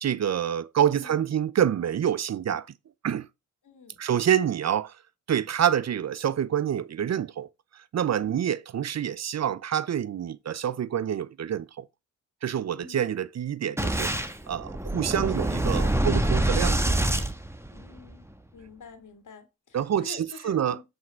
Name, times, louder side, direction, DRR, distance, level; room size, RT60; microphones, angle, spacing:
voice 1, 0.0-2.7 3.0-3.3 4.0-4.9 5.3-7.5 7.9-11.8 12.4-17.0 19.7-20.8, right 9 dB, 55° right, 0.6 m, -27 dB
voice 2, 0.9-1.3 3.6-4.0 8.2-8.5 12.8-13.2 17.7-18.3 18.5-20.8, left 5 dB, 65° left, 2.0 m, -48 dB
Boom, 13.8-18.2, right 1 dB, 10° right, 1.2 m, -26 dB
8.1 x 5.2 x 4.6 m
supercardioid pair, 45°, 32 cm